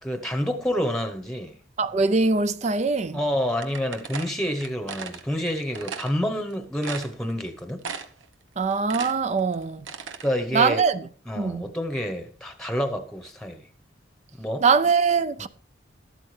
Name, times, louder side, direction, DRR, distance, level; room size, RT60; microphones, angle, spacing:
voice 1, 0.0-1.6 3.1-7.8 10.2-10.8 11.3-13.7 14.4-14.6 15.4-15.5, equal, 5° left, 1.0 m, -28 dB
voice 2, 1.8-3.2 8.6-9.9 10.5-11.0 11.4-11.7 14.6-15.5, right 4 dB, 35° right, 0.4 m, -22 dB
sound 1, 3.6-5.2 5.7-6.1 6.5-6.6 6.8-7.5 7.8-8.3 8.6-10.3, right 5 dB, 90° right, 1.1 m, -36 dB
13.0 x 12.0 x 3.3 m
head